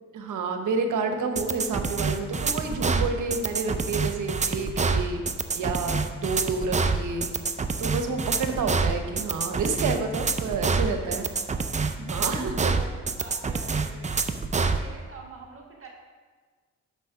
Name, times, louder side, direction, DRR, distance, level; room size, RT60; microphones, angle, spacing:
voice 1, 0.1-5.2 5.5-7.3 7.8-11.3 12.0-12.8, right 4 dB, 80° right, 6 dB, 1.0 m, -29 dB
sound 1, 1.4-14.8, right 4 dB, 25° right, 0.5 m, -26 dB
voice 2, 10.6-11.1 11.4-12.9 13.2-14.2 14.6-15.9, right 3 dB, 45° right, -1 dB, 1.4 m, -46 dB
6.3 x 6.1 x 5.7 m, 1.5 s
cardioid pair, 85°, 30 cm